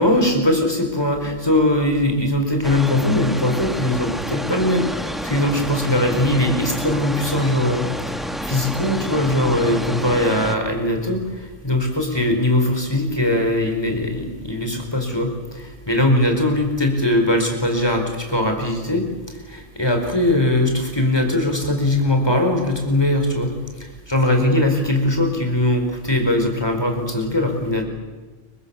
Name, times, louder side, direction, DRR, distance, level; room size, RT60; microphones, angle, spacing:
voice 1, 0.0-4.9 5.2-7.9 8.4-11.2 11.6-19.1 19.5-23.5 24.1-27.8, left 1 dB, 20° left, 4 dB, 4.6 m, -20 dB
sound 1, 2.6-10.6, equal, ahead, 1.2 m, -29 dB
30.0 x 24.0 x 7.1 m, 1.3 s
omnidirectional pair, 1.2 m